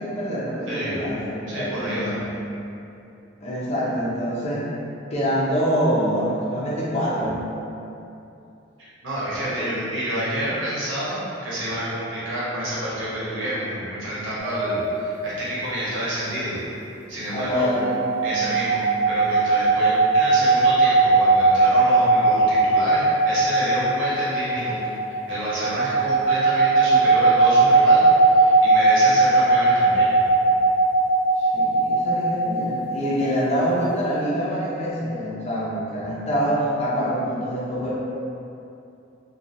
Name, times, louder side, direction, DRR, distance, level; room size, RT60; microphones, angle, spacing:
voice 1, 0.0-2.2 3.4-4.7 5.1-7.4 9.4-9.7 17.3-17.9 18.3-18.6 31.4-37.9, equal, 35° left, -7 dB, 0.5 m, -25 dB
voice 2, 0.7-1.0 1.5-2.1 8.8-16.6 17.1-17.6 18.2-18.8 19.1-24.8 25.1-30.1, right 1 dB, 90° right, -10 dB, 1.0 m, -29 dB
sound 1, 14.4-15.5 17.5-33.6, right 3 dB, 40° right, 0.7 m, -19 dB
2.5 x 2.3 x 2.7 m, 2.7 s
head